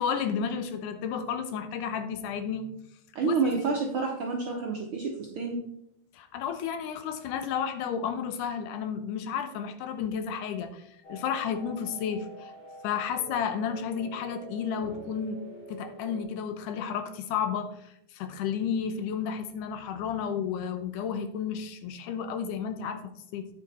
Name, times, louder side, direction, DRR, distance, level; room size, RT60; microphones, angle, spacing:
voice 1, 0.0-2.7 3.2-3.4 6.1-12.5 12.8-15.4 15.7-23.5, left 7 dB, 75° left, 9 dB, 2.2 m, -32 dB
voice 2, 3.1-5.6, right 4 dB, 85° right, 0 dB, 1.1 m, -29 dB
sound 1, 11.0-16.2, right 2 dB, 45° left, 3.0 m, -45 dB
8.7 x 6.4 x 4.2 m, 0.76 s
omnidirectional pair, 3.9 m